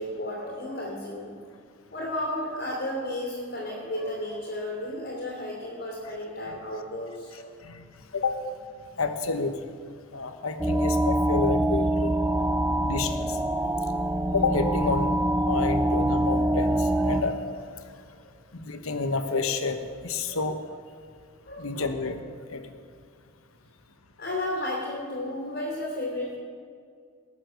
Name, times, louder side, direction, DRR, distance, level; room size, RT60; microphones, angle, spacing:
voice 1, 0.0-1.3 1.9-7.5 8.1-8.3 12.3-12.5 13.0-13.1 13.8-14.0 15.6-15.7 20.3-20.4 21.4-21.9 24.2-26.4, left 1 dB, 50° left, -3 dB, 2.9 m, -33 dB
voice 2, 9.0-9.5 10.1-12.1 12.8-13.4 14.3-15.1 15.5-17.4 18.5-19.8 20.0-20.6 21.6-22.2 22.5-22.6, left 4 dB, 85° left, 8 dB, 1.0 m, -29 dB
sound 1, 10.6-17.2, right 1 dB, 10° right, 0.5 m, -25 dB
19.0 x 7.4 x 6.4 m, 2.2 s
head